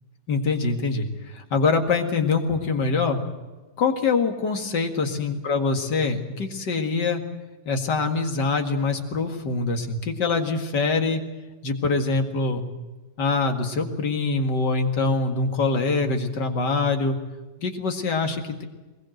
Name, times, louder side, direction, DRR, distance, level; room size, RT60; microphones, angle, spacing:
voice 1, 0.3-1.1 1.3-3.2 3.8-7.2 7.7-11.2 11.6-12.6 13.2-17.2 17.6-18.6, left 4 dB, 80° left, 5 dB, 2.7 m, -24 dB
21.5 x 21.0 x 7.9 m, 1.2 s
omnidirectional pair, 1.8 m